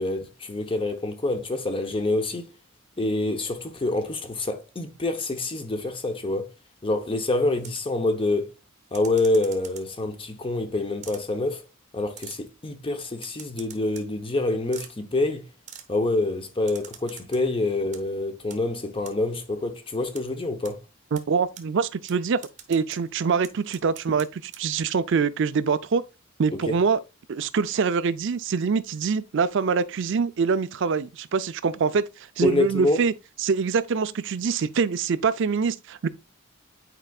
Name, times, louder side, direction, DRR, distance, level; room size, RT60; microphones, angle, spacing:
voice 1, 0.0-2.5 3.0-6.5 6.8-8.5 8.9-11.6 11.9-15.5 15.9-20.8 26.5-26.8 32.4-33.0, left 2 dB, 25° left, 0.8 m, -26 dB
sound 1, 7.6-8.0 8.9-10.1 11.0-11.2 12.1-12.4 13.2-14.1 14.7-14.9 15.7-15.9 16.7-17.4 17.8-18.0 18.5-18.6 19.1-19.2 20.2-20.3 20.7-20.8 21.2-21.3 21.6-21.7 22.1-22.2 22.4-23.0 23.4-24.3 24.5-24.6, right 8 dB, 35° right, 0.8 m, -43 dB
voice 2, 21.1-22.4 22.7-24.3 24.6-26.0 26.4-27.0 27.3-33.1 33.4-36.1, right 5 dB, 60° right, 0.4 m, -24 dB
8.8 x 4.6 x 2.3 m
head